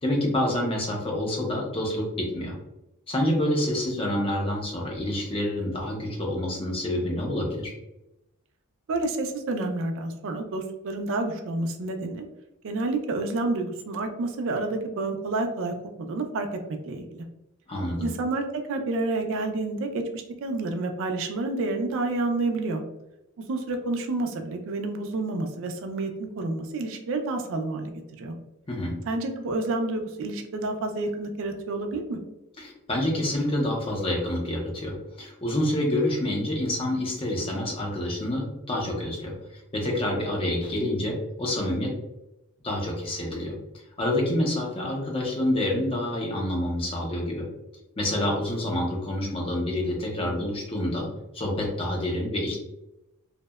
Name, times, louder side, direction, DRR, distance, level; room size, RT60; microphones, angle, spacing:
voice 1, 0.0-2.6 3.1-7.7 17.7-18.1 28.7-29.0 32.6-39.3 39.7-41.9 42.6-43.5 44.0-47.5 48.0-51.1 51.3-52.6, left 1 dB, 25° left, 0 dB, 0.5 m, -27 dB
voice 2, 8.9-12.2 12.6-16.5 16.9-17.2 18.0-22.8 23.4-28.3 29.1-32.2, right 2 dB, 60° right, 5 dB, 0.4 m, -29 dB
2.7 x 2.1 x 2.2 m, 0.92 s
head